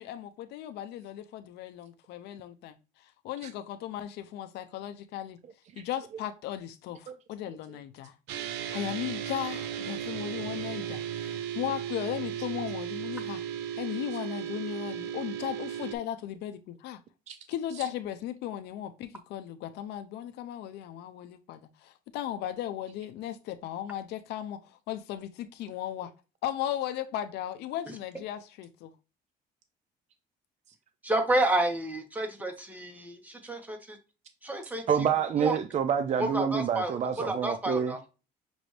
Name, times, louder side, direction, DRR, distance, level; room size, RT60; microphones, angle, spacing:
voice 1, 0.0-2.7 3.0-5.4 5.8-8.1 8.7-13.4 13.8-17.0 17.5-26.1 26.4-28.9, left 11 dB, 80° left, 0.5 m, -36 dB
sound 1, 8.3-15.9, right 9 dB, 85° right, 0.6 m, -35 dB
voice 2, 31.0-34.0 34.4-34.8 35.4-35.6 36.2-38.0, right 1 dB, 10° right, 1.1 m, -30 dB
voice 3, 34.9-37.9, right 7 dB, 45° right, 0.5 m, -27 dB
6.0 x 2.6 x 3.2 m
cardioid pair, 110°, 17 cm